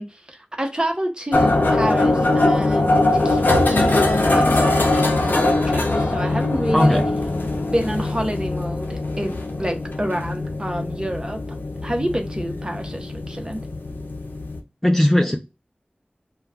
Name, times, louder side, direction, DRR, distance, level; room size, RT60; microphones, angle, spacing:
voice 1, 0.0-7.0 7.7-11.4 11.8-13.6, equal, 25° right, 0.7 m, -28 dB
sound 1, 1.3-14.6, left 2 dB, 80° left, 0.5 m, -21 dB
voice 2, 6.7-7.1 14.8-15.4, left 1 dB, 10° left, 0.4 m, -17 dB
2.2 x 2.2 x 3.4 m
wide cardioid pair, 45°, 3 cm